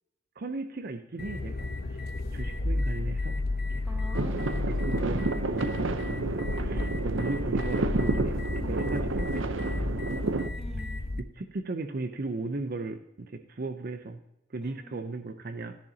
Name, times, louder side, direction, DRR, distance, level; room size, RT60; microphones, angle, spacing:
voice 1, 0.4-2.0 2.3-3.4 3.7-3.9 4.4-10.2 11.4-14.2 14.5-15.8, right 3 dB, 50° right, 8 dB, 0.6 m, -36 dB
sound 1, 1.2-11.2, left 2 dB, 55° left, 0.7 m, -32 dB
voice 2, 3.8-5.2 10.5-11.0 14.6-15.1, equal, ahead, -1 dB, 2.4 m, -46 dB
sound 2, 4.1-10.5, right 3 dB, 85° right, 0.8 m, -30 dB
13.0 x 10.5 x 2.8 m, 0.87 s
head